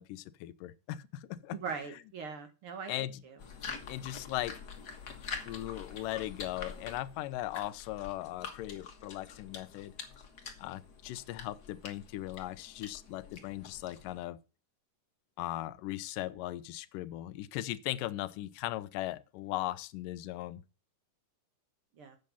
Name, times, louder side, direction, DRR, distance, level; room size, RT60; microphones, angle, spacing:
voice 1, 0.0-1.6 2.9-3.2 3.9-4.6 5.5-9.9 10.6-14.4 15.4-20.6, left 15 dB, 90° left, 2.3 m, -38 dB
voice 2, 1.5-3.4 22.0-22.2, right 5 dB, 55° right, 1.6 m, -41 dB
sound 1, 3.4-14.2, left 6 dB, 45° left, 1.5 m, -46 dB
8.3 x 6.5 x 7.0 m
omnidirectional pair, 3.7 m